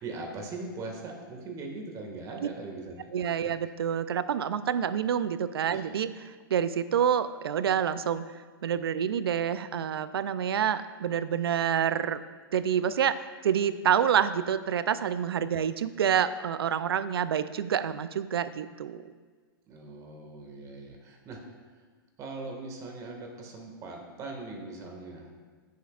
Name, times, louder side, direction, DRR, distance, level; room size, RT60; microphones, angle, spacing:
voice 1, 0.0-3.6 5.7-5.8 19.7-21.4 21.8-21.9 22.2-25.3, right 3 dB, 25° right, 1 dB, 1.8 m, -40 dB
voice 2, 3.1-6.1 6.5-8.2 8.6-12.2 12.5-19.1, right 8 dB, 80° right, 14 dB, 0.5 m, -27 dB
15.0 x 7.1 x 2.4 m, 1.5 s
hypercardioid pair, 130°, 12 cm